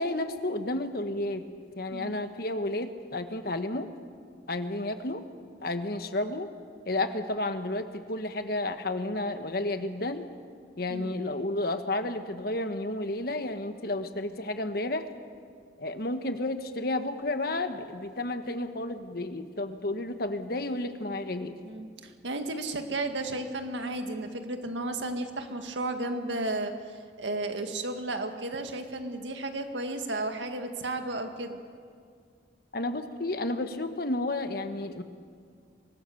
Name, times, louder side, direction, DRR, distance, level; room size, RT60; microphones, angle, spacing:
voice 1, 0.0-1.4 1.8-3.9 4.5-5.2 5.6-6.5 6.9-10.3 10.8-15.1 15.8-21.6 32.7-35.0, left 2 dB, 55° left, 8 dB, 1.3 m, -31 dB
voice 2, 1.9-2.2 10.9-11.1 21.6-26.7 27.2-31.6, right 2 dB, 85° right, 6 dB, 1.9 m, -33 dB
24.0 x 18.5 x 7.1 m, 2.1 s
head